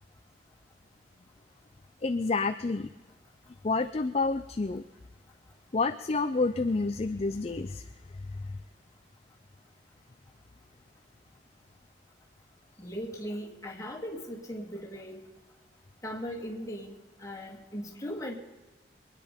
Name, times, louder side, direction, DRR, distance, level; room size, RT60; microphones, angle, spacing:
voice 1, 2.0-2.9 3.6-4.8 5.7-7.9 8.3-8.4, left 3 dB, 35° left, 9 dB, 0.5 m, -29 dB
voice 2, 12.8-15.3 16.0-18.4, equal, 15° left, -1 dB, 2.5 m, -38 dB
23.5 x 10.0 x 5.1 m, 1.2 s
head